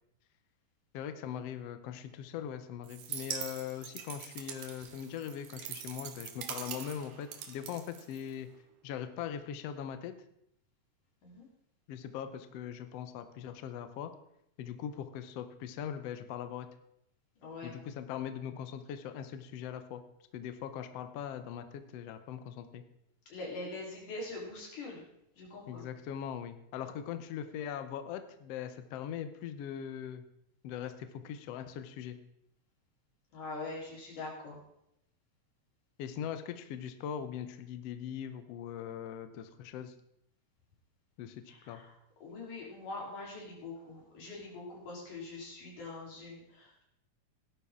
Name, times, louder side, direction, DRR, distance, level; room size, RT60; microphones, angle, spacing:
voice 1, 0.9-8.5 8.8-10.1 11.9-14.1 14.6-16.7 17.6-20.0 20.3-22.8 25.7-30.3 30.6-32.2 36.0-39.9 41.2-41.8, left 9 dB, 70° left, 9 dB, 1.6 m, -41 dB
sound 1, 2.8-8.6, right 9 dB, 90° right, 2.6 m, -43 dB
voice 2, 17.4-17.8 23.3-25.0 25.4-25.9 33.3-34.6 41.5-41.9 42.2-46.9, left 2 dB, 90° left, -3 dB, 5.2 m, -43 dB
16.5 x 11.5 x 3.7 m, 0.76 s
omnidirectional pair, 3.5 m